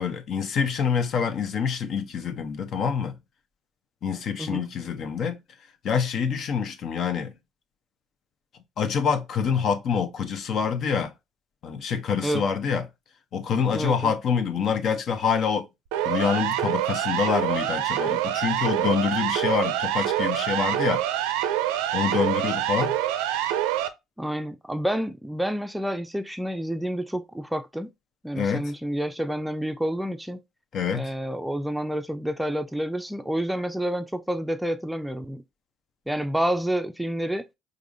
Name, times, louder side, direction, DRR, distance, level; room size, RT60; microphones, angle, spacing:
voice 1, 0.0-3.1 4.0-5.4 5.8-7.3 8.8-11.1 11.6-12.8 13.3-15.6 16.0-21.0 21.9-22.9 28.3-28.6 30.7-31.1, left 6 dB, 55° left, 0.7 m, -26 dB
voice 2, 13.7-14.2 24.2-27.9 28.2-30.4 30.9-35.4 36.1-37.5, right 1 dB, 5° right, 0.4 m, -29 dB
Siren, 15.9-23.9, right 12 dB, 75° right, 0.4 m, -26 dB
4.7 x 2.6 x 2.5 m
hypercardioid pair, 55°, 0 cm